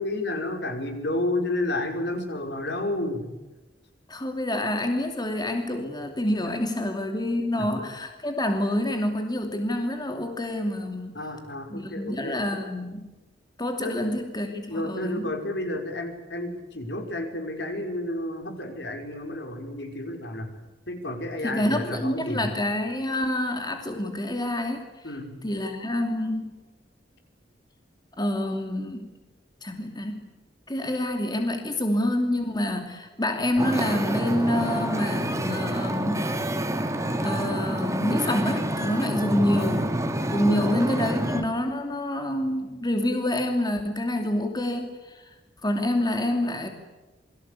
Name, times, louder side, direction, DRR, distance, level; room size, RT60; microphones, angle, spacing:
voice 1, 0.0-3.3 11.1-12.4 13.8-14.1 14.7-20.5 20.9-22.5 25.0-25.3 38.9-39.2 40.5-40.7, left 1 dB, 65° left, 5 dB, 5.6 m, -31 dB
voice 2, 4.1-11.2 11.7-13.1 13.6-15.3 21.4-24.9 25.4-26.5 28.2-29.1 29.6-30.3 30.7-36.3 37.2-39.9 40.3-45.3 45.6-46.7, left 1 dB, 25° left, 4 dB, 2.8 m, -27 dB
Wind / Ocean, 33.6-41.4, right 1 dB, 15° right, 2.7 m, -28 dB
28.5 x 23.0 x 8.5 m, 1.1 s
head